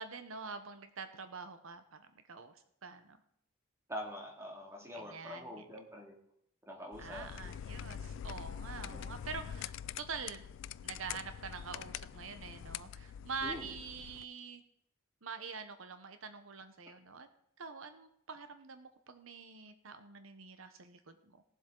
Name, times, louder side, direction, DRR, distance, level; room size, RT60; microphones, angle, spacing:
voice 1, 0.0-3.2 4.9-5.7 7.0-10.5 10.8-14.6 15.2-17.3 17.6-21.4, right 5 dB, 75° right, 9 dB, 1.0 m, -46 dB
voice 2, 3.9-6.1 6.7-7.5 13.4-13.7, equal, 15° right, 0 dB, 2.3 m, -45 dB
sound 1, 6.9-14.2, left 9 dB, 65° left, 0.3 m, -45 dB
18.0 x 7.6 x 3.8 m, 0.71 s
head